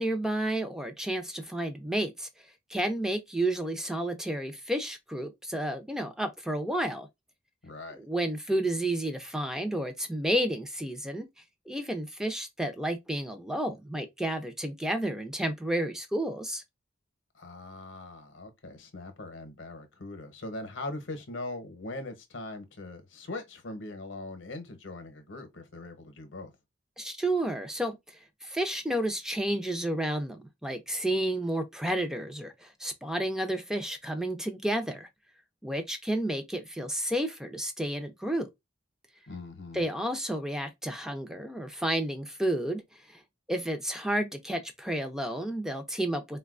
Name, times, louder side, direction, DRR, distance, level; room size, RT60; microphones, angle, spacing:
voice 1, 0.0-2.3 2.7-7.1 7.9-11.3 11.7-16.6 27.0-35.1 35.6-38.5 39.7-42.8 43.1-43.2 43.5-46.4, right 1 dB, 5° right, 0.5 m, -31 dB
voice 2, 7.6-8.0 17.3-26.5 39.3-39.9, left 2 dB, 70° left, 0.8 m, -41 dB
3.9 x 2.2 x 2.4 m
head